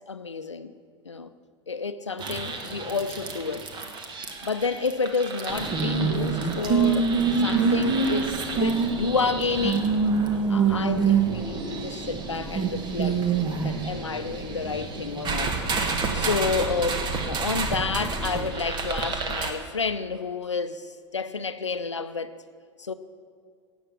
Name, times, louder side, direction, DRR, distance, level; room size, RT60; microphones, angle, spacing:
voice 1, 0.1-0.7 1.0-1.3 1.7-3.7 4.4-7.1 7.4-9.9 10.5-13.2 13.6-15.6 16.1-22.3 22.8-22.9, left 4 dB, 85° left, 0.7 m, -30 dB
sound 1, 2.2-19.5, right 5 dB, 30° right, 1.6 m, -27 dB
17.5 x 7.3 x 7.2 m
figure-of-eight pair, 85°, 15 cm